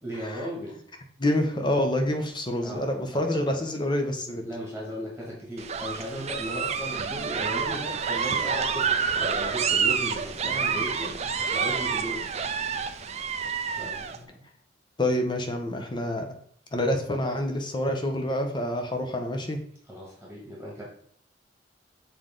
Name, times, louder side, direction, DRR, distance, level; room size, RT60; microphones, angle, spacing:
voice 1, 0.0-0.8 2.6-2.9 3.1-3.2 4.4-12.3 13.8-14.5 19.9-20.8, equal, ahead, -6 dB, 2.0 m, -36 dB
voice 2, 1.2-4.5 15.0-16.3 16.7-19.6, left 1 dB, 25° left, 4 dB, 0.9 m, -27 dB
sound 1, 5.6-14.2, right 6 dB, 35° right, 0.5 m, -28 dB
6.9 x 3.9 x 3.8 m, 0.64 s
head